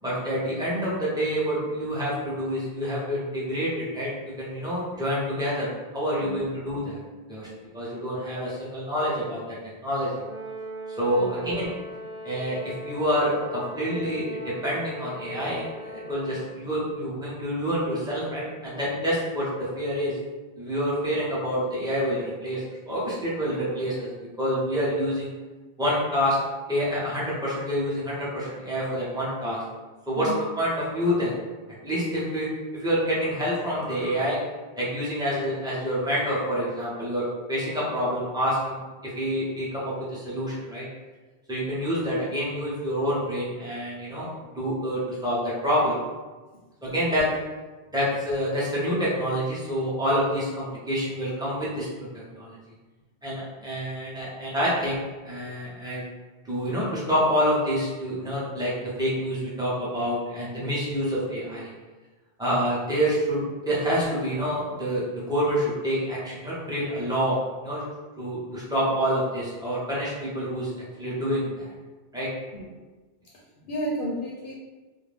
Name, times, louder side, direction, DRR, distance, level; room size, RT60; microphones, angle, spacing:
voice 1, 0.0-7.0 7.3-7.5 7.7-9.4 9.8-10.1 11.0-11.7 12.2-20.1 20.6-24.1 24.4-25.3 25.8-26.4 26.7-29.6 30.1-30.3 30.6-31.4 31.8-32.5 32.7-34.4 34.8-38.8 39.2-40.9 41.5-44.3 44.5-46.0 46.8-47.3 47.9-52.6 53.2-55.0 55.2-56.0 56.4-58.7 59.0-61.7 62.4-67.8 68.2-70.7 71.0-71.7 72.1-72.3, equal, 5° right, -8 dB, 0.6 m, -27 dB
Brass instrument, 10.2-16.6, equal, 65° right, 0.7 m, -39 dB
voice 2, 11.2-11.5 30.2-30.4 72.5-72.7 73.6-74.5, equal, 65° left, -4 dB, 0.7 m, -32 dB
2.5 x 2.1 x 3.3 m, 1.3 s
omnidirectional pair, 1.0 m